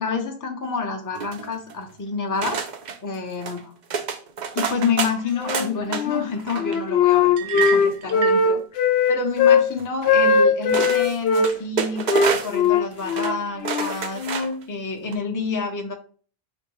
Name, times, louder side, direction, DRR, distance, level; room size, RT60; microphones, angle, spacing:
voice 1, 0.0-2.6 3.0-3.7 4.5-8.6 9.1-14.2 14.7-15.9, left 4 dB, 20° left, 2 dB, 0.6 m, -28 dB
sound 1, 1.1-1.8 2.4-3.0 3.4-3.6 3.9-6.0 6.4-6.8 7.6-8.4 9.8-9.9 10.7-12.7 13.0-13.3 13.6-14.6 15.0-15.1, right 6 dB, 55° right, 0.6 m, -29 dB
Wind instrument woodwind instrument, 5.4-6.3 6.6-9.7 10.0-11.5 12.1-14.6, left 5 dB, 80° left, 0.8 m, -19 dB
sound 2, 7.4-8.5, right 11 dB, 80° right, 0.8 m, -27 dB
5.1 x 2.1 x 4.6 m, 0.43 s
omnidirectional pair, 1.0 m